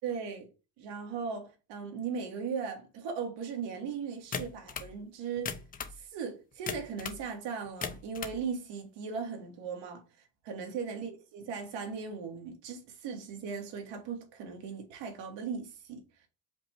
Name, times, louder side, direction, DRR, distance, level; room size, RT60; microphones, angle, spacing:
voice 1, 0.0-0.5 0.8-5.6 6.0-10.0 10.4-16.0, right 6 dB, 80° right, 1.5 m, -38 dB
sound 1, 4.3-4.9 5.4-6.0 6.7-7.2 7.6-8.4, left 6 dB, 20° left, 0.4 m, -37 dB
5.1 x 2.2 x 4.4 m
cardioid pair, 140°, 43 cm